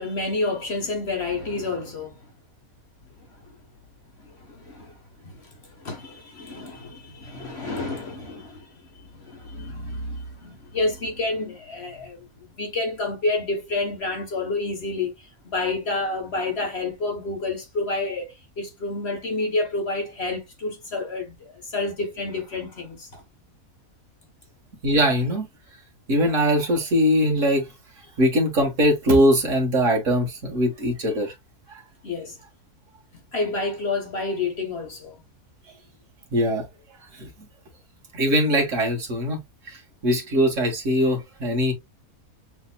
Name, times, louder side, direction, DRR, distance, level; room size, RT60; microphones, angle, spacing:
voice 1, 0.0-2.1 3.4-3.5 4.4-5.0 5.2-8.7 9.0-23.2 32.0-32.4 33.1-35.1, left 3 dB, 45° left, 1.4 m, -29 dB
voice 2, 24.8-25.5 26.1-27.7 28.2-31.3 36.3-36.6 37.2-37.3 38.1-39.4 40.0-41.7, equal, 60° right, 1.6 m, -21 dB
6.3 x 2.9 x 2.2 m
omnidirectional pair, 1.6 m